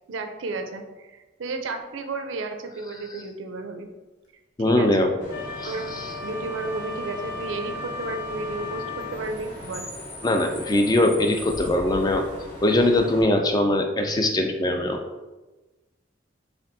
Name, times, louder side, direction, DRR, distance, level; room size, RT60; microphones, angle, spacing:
voice 1, 0.1-3.9 4.6-5.1 5.6-6.0 6.2-9.9, right 3 dB, 85° right, 6 dB, 0.5 m, -33 dB
voice 2, 4.6-5.1 5.6-6.1 10.2-12.3 12.6-15.0, left 1 dB, 20° left, 4 dB, 0.3 m, -21 dB
Bus / Idling / Screech, 5.2-13.2, left 1 dB, 45° left, 1.2 m, -39 dB
Wind instrument woodwind instrument, 5.3-9.3, left 3 dB, 85° left, 1.0 m, -36 dB
4.4 x 3.4 x 2.6 m, 1.2 s
head